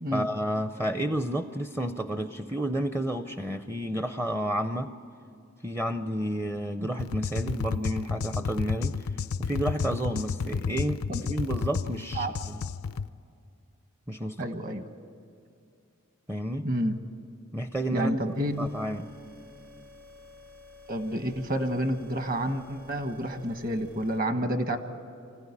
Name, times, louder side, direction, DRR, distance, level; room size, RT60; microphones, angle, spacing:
voice 1, 0.1-4.9 5.6-9.0 9.4-12.6 14.1-14.5 16.3-16.7 17.5-19.1, right 1 dB, 10° right, 8 dB, 0.5 m, -31 dB
sound 1, 7.0-13.1, left 5 dB, 90° left, 0.5 m, -31 dB
voice 2, 14.4-14.8 16.6-17.0 17.9-18.7 20.9-24.8, equal, 45° right, 7 dB, 1.4 m, -29 dB
sound 2, 18.3-24.2, left 2 dB, 80° right, 2.5 m, -52 dB
24.5 x 15.5 x 9.8 m, 2.5 s
head